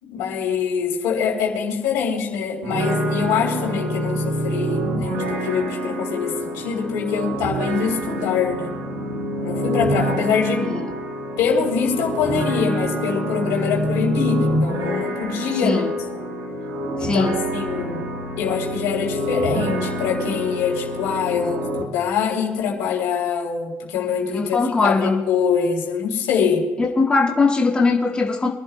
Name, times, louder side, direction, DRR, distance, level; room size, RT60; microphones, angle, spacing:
voice 1, 0.0-8.7 9.4-10.7 11.4-15.9 16.1-16.2 17.0-18.0 18.4-26.6, left 6 dB, 85° left, -1 dB, 3.6 m, -24 dB
sound 1, 2.6-21.8, right 1 dB, 75° right, 1.9 m, -26 dB
voice 2, 17.0-17.4 21.4-21.6 24.3-25.2 26.8-28.5, left 3 dB, 20° left, -2 dB, 2.0 m, -20 dB
26.5 x 11.5 x 2.3 m, 1.1 s
supercardioid pair, 85°, 5 cm